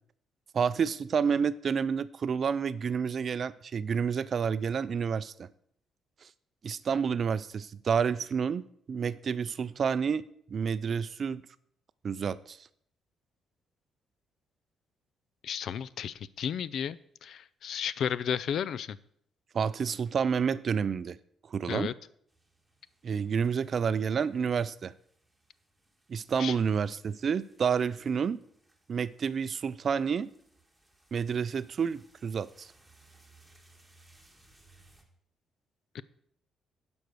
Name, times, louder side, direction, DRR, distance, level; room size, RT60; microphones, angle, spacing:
voice 1, 0.5-5.5 6.2-6.3 6.6-10.2 10.5-11.4 12.0-12.6 19.5-21.2 21.5-21.9 23.0-24.9 26.1-28.4 28.9-30.3 31.1-32.7, right 6 dB, 50° right, 16 dB, 0.4 m, -29 dB
voice 2, 15.4-19.0 21.7-21.9 26.4-26.5 35.9-36.0, left 8 dB, 65° left, 19 dB, 0.4 m, -33 dB
sound 1, 22.3-35.0, right 2 dB, ahead, 2.0 m, -64 dB
11.5 x 5.3 x 6.2 m, 0.68 s
cardioid pair, 90°, 0 cm